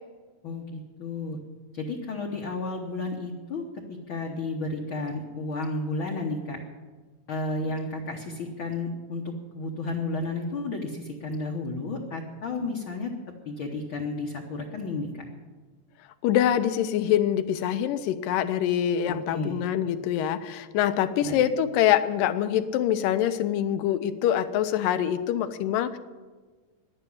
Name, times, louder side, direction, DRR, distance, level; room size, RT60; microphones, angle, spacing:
voice 1, 0.4-1.4 1.7-3.6 3.9-6.6 7.3-13.1 13.4-15.2 19.1-19.7 21.2-21.4, left 2 dB, 65° left, 0 dB, 1.3 m, -32 dB
voice 2, 16.2-26.0, left 10 dB, 80° left, 11 dB, 2.4 m, -25 dB
11.0 x 10.0 x 9.9 m, 1.4 s
omnidirectional pair, 3.9 m